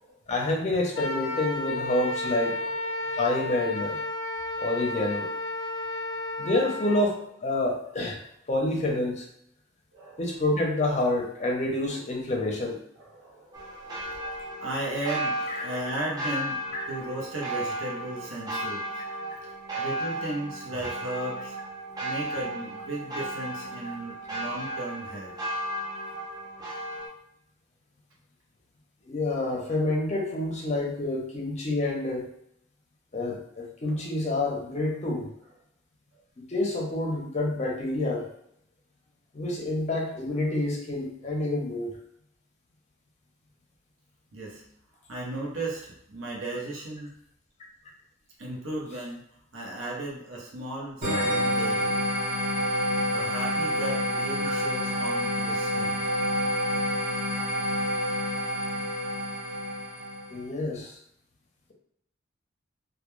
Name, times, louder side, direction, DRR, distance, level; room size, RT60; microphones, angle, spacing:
voice 1, 0.3-2.5 3.1-4.0 4.6-5.2 6.4-8.2 8.5-9.3 10.2-12.8 15.6-15.7 29.1-32.3 33.1-35.3 36.5-38.3 39.3-41.9 51.1-51.2 60.3-60.9, left 2 dB, 35° left, 0 dB, 0.6 m, -28 dB
Wind instrument woodwind instrument, 0.9-7.0, left 2 dB, 90° left, 0.4 m, -32 dB
voice 2, 2.5-3.2 4.7-5.0 6.9-7.0 7.6-7.7 9.9-10.4 13.0-16.6 16.9-19.0 19.7-21.6 22.0-25.3 29.4-29.5 33.8-34.1 44.3-44.6 45.1-47.1 48.4-49.2 49.5-52.0 53.1-56.0, right 1 dB, 80° right, -3 dB, 0.7 m, -36 dB
sound 1, 13.5-27.1, right 1 dB, 20° right, 0.5 m, -34 dB
sound 2, 51.0-60.4, equal, 40° right, 0.9 m, -28 dB
2.2 x 2.2 x 3.0 m, 0.74 s
head